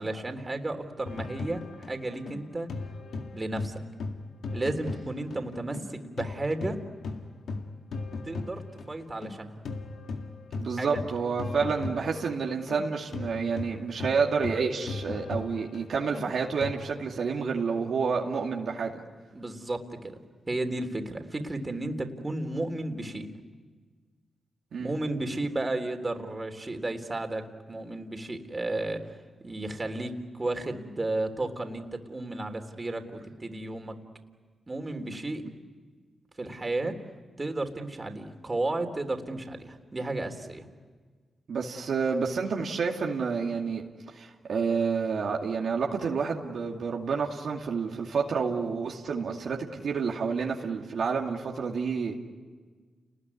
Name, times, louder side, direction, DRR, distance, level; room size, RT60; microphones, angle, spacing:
voice 1, 0.0-2.7 3.3-3.8 4.5-6.8 8.2-9.6 10.8-10.9 19.3-20.2 20.5-23.3 24.8-29.2 29.4-34.0 34.7-35.4 36.4-37.0 37.4-40.7, right 2 dB, 30° right, 5 dB, 3.5 m, -33 dB
sound 1, 1.0-5.9 6.2-16.7, left 3 dB, 75° left, 1.9 m, -37 dB
voice 2, 10.6-18.9 24.7-24.9 41.5-52.2, right 5 dB, 75° right, 0 dB, 2.4 m, -29 dB
29.5 x 20.5 x 9.8 m, 1.5 s
cardioid pair, 55°, 0 cm